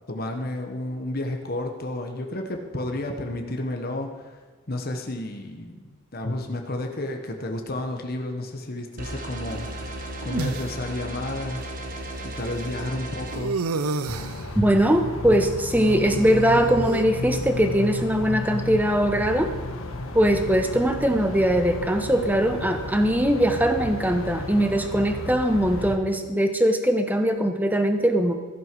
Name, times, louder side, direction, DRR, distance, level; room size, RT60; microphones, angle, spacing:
voice 1, 0.1-4.4 4.7-10.0 10.2-11.6 12.2-13.6, left 1 dB, 45° left, 3 dB, 1.2 m, -31 dB
sound 1, 9.0-13.4, right 1 dB, 40° right, 1.6 m, -35 dB
sound 2, 9.5-10.6 11.6-11.7 13.3-14.5 15.7-17.0, right 3 dB, 85° right, 0.6 m, -31 dB
sound 3, 14.1-26.0, left 1 dB, 70° left, 1.3 m, -33 dB
voice 2, 14.6-19.5 20.1-28.3, equal, 10° right, 6 dB, 0.9 m, -21 dB
14.5 x 11.0 x 4.7 m, 1.3 s
head